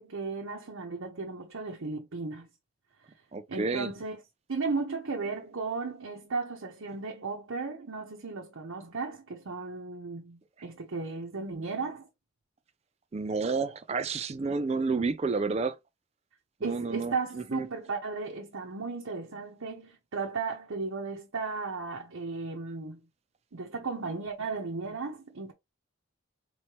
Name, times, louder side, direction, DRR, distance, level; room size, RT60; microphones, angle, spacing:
voice 1, 0.0-2.5 3.5-4.2 4.5-12.1 16.6-23.0 23.5-25.5, right 4 dB, 90° right, 0.9 m, -35 dB
voice 2, 3.3-3.9 13.1-15.8 16.6-17.7, right 4 dB, 30° right, 0.4 m, -30 dB
4.3 x 3.1 x 2.8 m
head